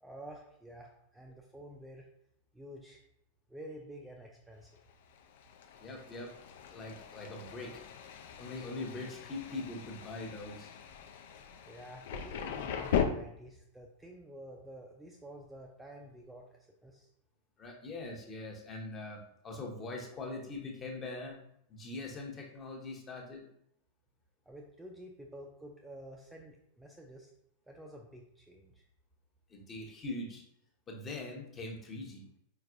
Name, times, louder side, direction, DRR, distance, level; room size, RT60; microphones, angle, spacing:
voice 1, 0.0-2.1 2.5-3.0 3.5-4.8 11.7-17.1 24.5-27.3 27.7-28.8, right 1 dB, 5° right, 0 dB, 0.5 m, -50 dB
Thunder, 4.9-13.0, left 8 dB, 55° left, 0.4 m, -39 dB
voice 2, 5.8-6.3 6.7-7.8 8.4-10.7 17.6-21.4 21.7-23.5 29.5-30.4 30.9-32.3, left 2 dB, 25° left, 0 dB, 1.0 m, -42 dB
4.5 x 4.4 x 2.5 m, 0.73 s
figure-of-eight pair, 90°, 0 cm